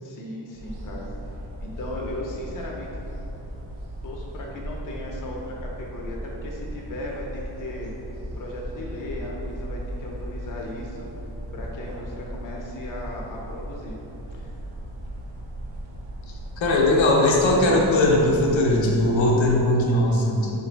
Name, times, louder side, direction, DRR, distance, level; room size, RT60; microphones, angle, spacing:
voice 1, 0.0-2.9 4.0-7.9 8.3-11.1 11.5-14.0 14.3-14.6, left 1 dB, 45° left, -2 dB, 0.5 m, -36 dB
sound 1, 0.5-19.7, right 1 dB, 80° right, 0.7 m, -37 dB
voice 2, 16.6-20.5, left 1 dB, 85° left, -1 dB, 0.7 m, -19 dB
3.1 x 2.5 x 4.4 m, 2.9 s
wide cardioid pair, 140°, 45 cm